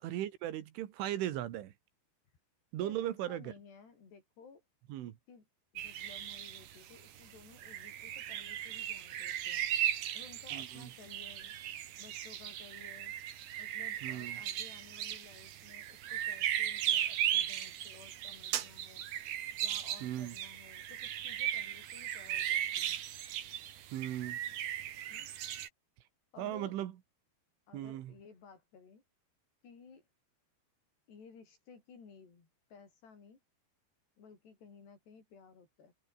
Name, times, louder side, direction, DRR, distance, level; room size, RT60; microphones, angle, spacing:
voice 1, 0.0-1.7 2.7-3.5 4.9-5.1 10.5-10.9 14.0-14.4 20.0-20.3 23.9-24.4 26.4-26.9 27.7-28.1, right 13 dB, 80° right, 4.2 m, -37 dB
voice 2, 2.8-4.6 5.3-5.4 5.7-9.7 10.1-11.5 12.0-13.1 13.6-19.1 19.6-23.0 25.1-25.3 26.3-26.8 27.7-29.0 29.6-30.1 31.1-33.4 34.2-35.9, left 5 dB, 60° left, 7.7 m, -56 dB
sound 1, 5.8-25.7, right 11 dB, 60° right, 3.5 m, -37 dB
omnidirectional pair, 5.5 m